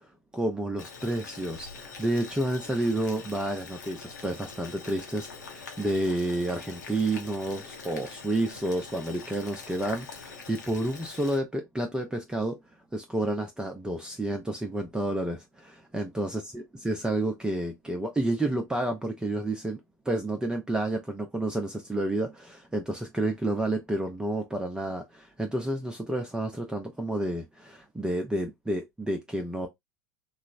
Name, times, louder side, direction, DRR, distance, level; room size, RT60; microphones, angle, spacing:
voice 1, 0.3-12.6 12.9-19.8 20.1-29.7, right 1 dB, 10° right, 0.5 m, -30 dB
Boiling, 0.8-11.4, left 5 dB, 85° left, 0.8 m, -44 dB
3.1 x 2.0 x 2.3 m
hypercardioid pair, 80°, 9 cm